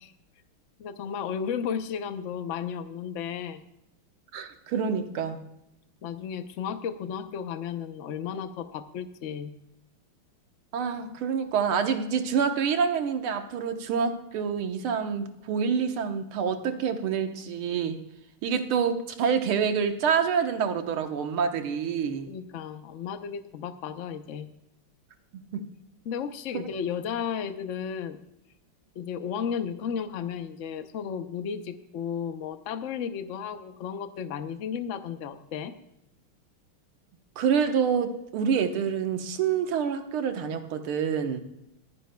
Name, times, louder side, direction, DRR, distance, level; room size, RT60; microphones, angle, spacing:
voice 1, 0.8-3.6 6.0-9.5 22.3-24.5 26.1-28.2 29.0-35.7, left 7 dB, 80° left, 9 dB, 0.6 m, -34 dB
voice 2, 4.3-5.4 10.7-18.0 18.4-22.3 25.3-25.7 37.4-41.4, right 6 dB, 85° right, 6 dB, 2.0 m, -27 dB
23.5 x 9.9 x 2.2 m, 0.83 s
omnidirectional pair, 2.3 m